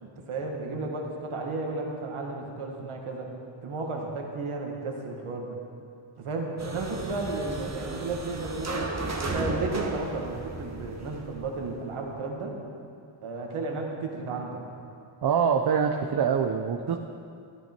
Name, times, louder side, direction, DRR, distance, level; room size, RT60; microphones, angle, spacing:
voice 1, 0.0-3.3 3.6-5.6 6.2-8.9 9.2-12.5 13.2-14.6, right 3 dB, 80° right, 1 dB, 1.8 m, -33 dB
sound 1, 6.6-11.8, right 2 dB, 30° right, 1.5 m, -34 dB
voice 2, 15.2-17.0, right 7 dB, 50° right, 3 dB, 0.7 m, -24 dB
13.5 x 12.0 x 4.5 m, 2.5 s
cardioid pair, 85°, 49 cm